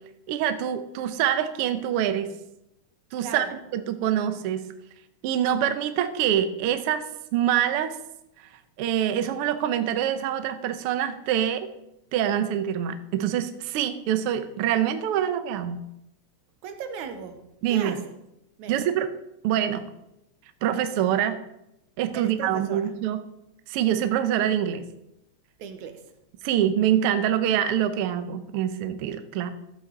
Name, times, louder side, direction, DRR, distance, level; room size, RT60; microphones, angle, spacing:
voice 1, 0.3-2.3 3.1-4.6 5.2-7.0 7.3-8.0 8.8-11.7 12.1-15.8 17.6-18.0 18.7-19.1 19.4-19.9 20.6-21.4 22.0-23.2 23.7-24.8 26.4-29.5, right 10 dB, 70° right, 9 dB, 1.4 m, -25 dB
voice 2, 3.2-3.5 16.6-17.4 17.7-18.0 18.6-18.9 22.1-22.9 25.6-26.0, right 6 dB, 85° right, 7 dB, 2.4 m, -37 dB
13.5 x 7.8 x 3.9 m, 0.85 s
omnidirectional pair, 3.3 m